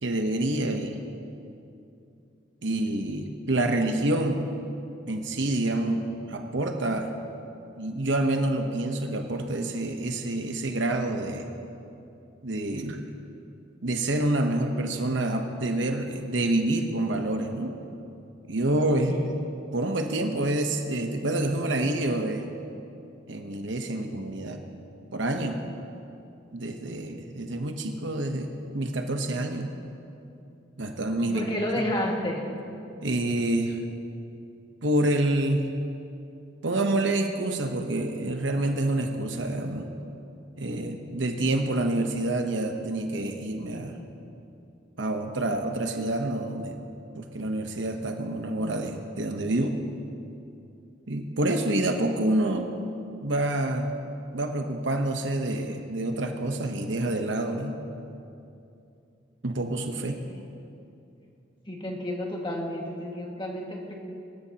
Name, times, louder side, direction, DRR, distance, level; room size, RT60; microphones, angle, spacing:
voice 1, 0.0-1.0 2.6-4.4 5.1-7.1 7.8-11.5 12.4-13.1 13.8-17.7 18.5-19.2 19.7-22.5 23.3-24.6 25.1-25.6 26.5-28.5 28.7-29.7 30.8-31.4 33.0-33.8 34.8-35.7 36.6-39.9 40.6-44.0 45.0-46.8 47.2-49.8 51.1-52.7 53.2-53.9 54.3-57.8 59.4-60.1, right 1 dB, 75° right, 4 dB, 1.0 m, -27 dB
voice 2, 31.2-32.4 59.9-60.3 61.7-64.0, left 1 dB, 25° left, -1 dB, 1.9 m, -31 dB
24.5 x 13.5 x 2.9 m, 2.7 s
head